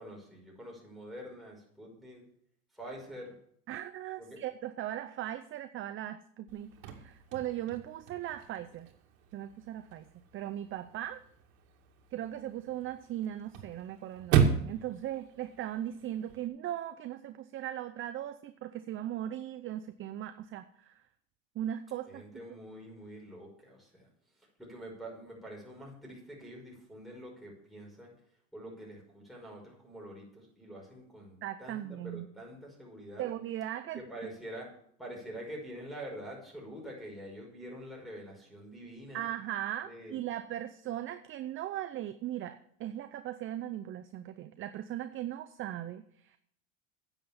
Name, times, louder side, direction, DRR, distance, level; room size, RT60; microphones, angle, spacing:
voice 1, 0.0-2.3 2.7-3.4 4.2-4.4 22.1-24.1 24.4-28.1 28.5-33.2 33.9-34.7 35.0-39.3 39.9-40.2, right 1 dB, ahead, -3 dB, 5.5 m, -46 dB
voice 2, 3.7-8.9 9.3-11.2 12.1-21.0 21.5-22.2 31.4-32.3 33.2-34.0 39.1-46.4, right 12 dB, 30° right, 10 dB, 0.6 m, -38 dB
Chirp tweet / Car / Slam, 6.5-16.5, right 7 dB, 70° right, 2.3 m, -35 dB
9.9 x 8.0 x 7.2 m, 0.65 s
supercardioid pair, 125°, 41 cm